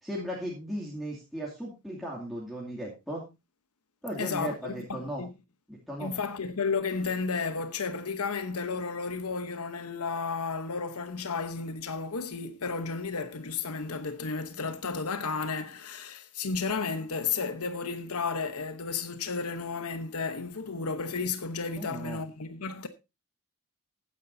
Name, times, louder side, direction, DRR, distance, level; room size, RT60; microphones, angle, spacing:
voice 1, 0.0-3.2 4.0-5.2 5.7-6.1 21.7-22.2, equal, ahead, 2.6 m, -36 dB
voice 2, 4.2-5.3 6.0-22.9, left 4 dB, 80° left, 1.0 m, -33 dB
14.5 x 9.9 x 2.7 m
head